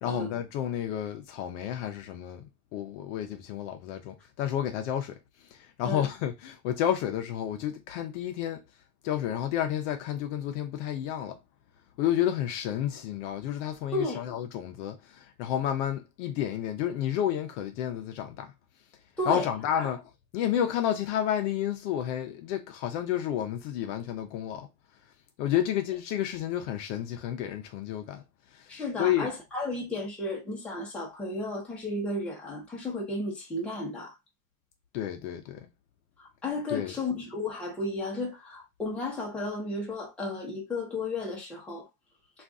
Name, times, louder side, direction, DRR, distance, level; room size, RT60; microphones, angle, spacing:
voice 1, 0.0-8.6 9.0-11.4 12.0-18.5 19.2-24.7 25.4-29.3 34.9-35.7 36.7-36.9, left 10 dB, 50° left, 0.5 m, -31 dB
voice 2, 13.9-14.2 19.2-19.5 19.8-19.9 28.7-34.2 36.2-41.9, left 2 dB, 5° left, 0.5 m, -33 dB
2.6 x 2.4 x 3.4 m
supercardioid pair, 145°, 49 cm